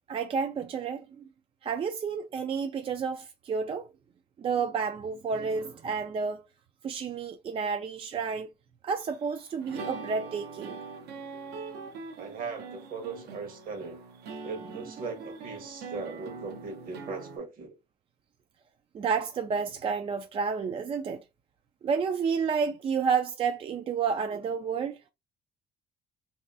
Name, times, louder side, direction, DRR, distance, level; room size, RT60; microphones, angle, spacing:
voice 1, 0.1-1.3 1.6-3.9 4.4-6.4 6.8-8.5 8.8-10.8 18.9-21.2 21.8-25.0, right 5 dB, 35° right, 0.3 m, -30 dB
sound 1, 9.0-17.4, right 4 dB, 75° right, 0.7 m, -42 dB
voice 2, 12.2-14.0 14.4-17.7, right 4 dB, 60° right, 1.1 m, -39 dB
3.1 x 2.7 x 2.3 m
cardioid pair, 110°, 17 cm